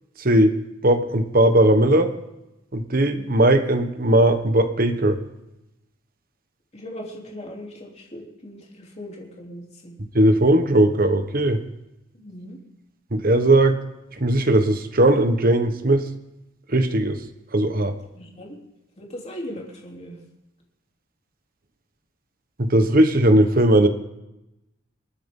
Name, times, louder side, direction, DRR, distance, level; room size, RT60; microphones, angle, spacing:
voice 1, 0.2-0.6 0.8-2.1 2.7-5.2 10.1-11.6 13.1-13.8 14.2-16.1 16.7-17.2 17.5-17.9 22.6-23.9, right 1 dB, 45° right, 8 dB, 1.3 m, -18 dB
voice 2, 6.7-9.9 12.1-12.6 18.1-18.6 19.0-20.2, equal, 35° left, -1 dB, 3.3 m, -38 dB
28.5 x 9.4 x 3.8 m, 0.93 s
head